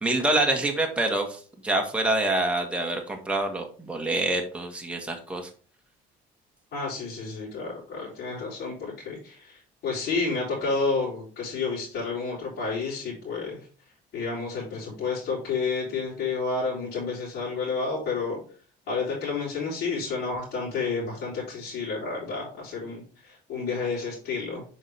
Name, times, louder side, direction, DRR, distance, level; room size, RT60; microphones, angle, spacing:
voice 1, 0.0-5.5, right 2 dB, 5° right, 2 dB, 1.5 m, -26 dB
voice 2, 6.7-13.7 14.1-18.4 18.9-24.6, left 4 dB, 70° left, -8 dB, 4.0 m, -30 dB
7.1 x 5.6 x 3.4 m, 0.40 s
cardioid pair, 110°, 17 cm